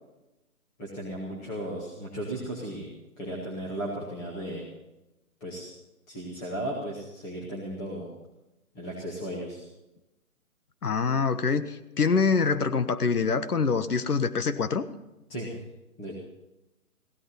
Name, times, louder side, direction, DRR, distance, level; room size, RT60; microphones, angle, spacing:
voice 1, 0.8-2.9 3.2-4.7 5.4-5.7 6.1-8.1 8.7-9.6 15.3-15.5 16.0-16.2, right 1 dB, 10° left, -5 dB, 1.6 m, -35 dB
voice 2, 10.8-14.8, left 5 dB, 90° left, 12 dB, 1.4 m, -25 dB
16.5 x 13.0 x 5.7 m, 0.95 s
hypercardioid pair, 170°, 44 cm